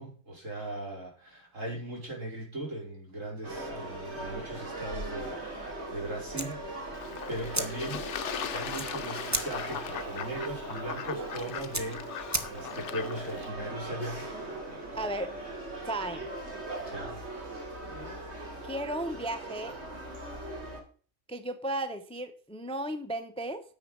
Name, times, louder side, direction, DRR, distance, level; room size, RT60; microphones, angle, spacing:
voice 1, 0.0-6.6 6.9-8.1 8.5-14.3 16.9-17.2, right 1 dB, 75° right, -2 dB, 5.1 m, -39 dB
sound 1, 3.4-20.8, right 2 dB, 55° right, 3.2 m, -40 dB
sound 2, 6.3-12.9, right 1 dB, 15° right, 1.0 m, -38 dB
Fowl / Bird / Water, 6.9-13.5, left 9 dB, 65° left, 1.0 m, -39 dB
voice 2, 15.0-15.3 15.8-16.3 18.6-19.7 21.3-23.6, right 1 dB, 5° left, 10 dB, 0.7 m, -34 dB
9.7 x 7.1 x 5.5 m, 0.42 s
omnidirectional pair, 1.4 m